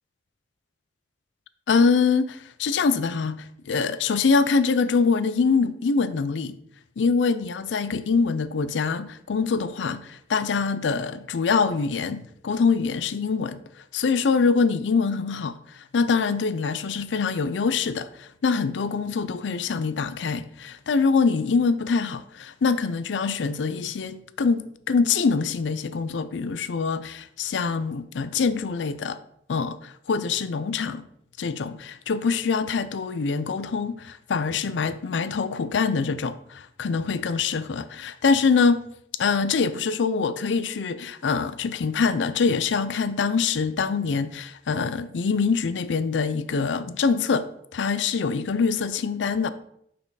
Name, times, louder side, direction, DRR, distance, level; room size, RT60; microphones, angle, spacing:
voice 1, 1.7-6.6 7.0-13.6 13.9-29.2 29.5-31.1 31.4-38.8 39.2-47.5 47.7-49.5, left 5 dB, 90° left, 0.4 m, -24 dB
5.6 x 4.5 x 4.7 m
head